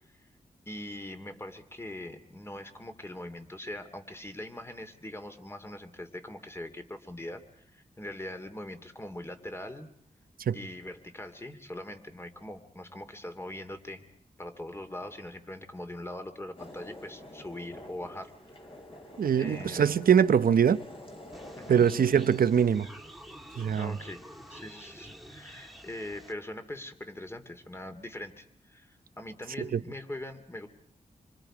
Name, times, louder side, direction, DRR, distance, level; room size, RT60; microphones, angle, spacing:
voice 1, 0.7-9.9 10.5-14.0 14.4-18.7 19.4-19.9 21.6-21.9 23.7-24.2 24.5-30.7, left 1 dB, 15° left, 2.6 m, -42 dB
sound 1, 16.6-22.6, left 1 dB, 40° left, 4.6 m, -47 dB
voice 2, 19.2-20.8 21.7-22.9 23.6-24.0 29.6-29.8, right 8 dB, 80° right, 0.8 m, -23 dB
sound 2, 21.3-26.3, equal, ahead, 2.1 m, -49 dB
27.0 x 25.5 x 5.0 m
cardioid pair, 75°, 15 cm